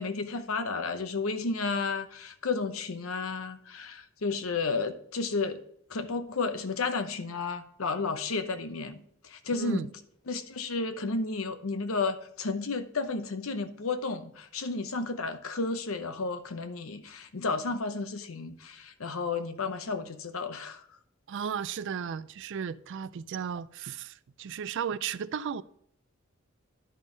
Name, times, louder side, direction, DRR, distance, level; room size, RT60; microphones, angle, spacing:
voice 1, 0.0-5.6 5.9-9.9 10.3-20.8, left 4 dB, 75° left, 0.8 m, -32 dB
voice 2, 9.5-9.9 21.3-25.6, right 7 dB, 60° right, 0.4 m, -35 dB
11.0 x 5.4 x 3.9 m
head